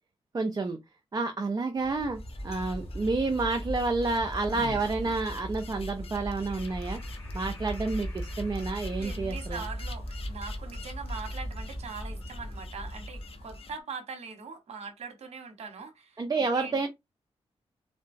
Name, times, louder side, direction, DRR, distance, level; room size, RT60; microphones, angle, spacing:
voice 1, 0.3-0.8 1.1-7.0 7.3-9.6 16.2-16.9, right 3 dB, 35° right, 0.5 m, -29 dB
sound 1, 1.8-13.7, equal, 25° left, 1.9 m, -38 dB
sound 2, 2.2-13.8, left 5 dB, 60° left, 0.6 m, -49 dB
voice 2, 9.0-16.9, right 5 dB, 85° right, 0.9 m, -42 dB
3.7 x 2.2 x 2.5 m
cardioid pair, 80°, 11 cm